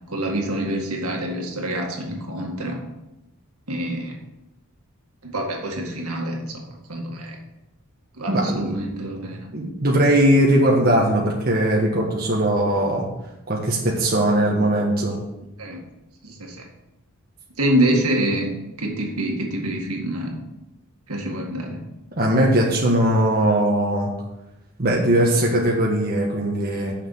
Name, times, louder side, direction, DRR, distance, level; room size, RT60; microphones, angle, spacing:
voice 1, 0.1-2.8 3.7-4.1 5.2-7.4 8.2-9.5 15.6-15.8 16.2-16.6 17.6-18.5 18.8-20.4 21.1-21.8, right 1 dB, 75° right, 0 dB, 2.0 m, -26 dB
voice 2, 8.3-8.8 9.5-13.1 13.5-15.2 22.2-24.1 24.8-26.9, right 1 dB, 45° right, -2 dB, 1.4 m, -20 dB
6.7 x 6.6 x 7.4 m, 0.92 s
head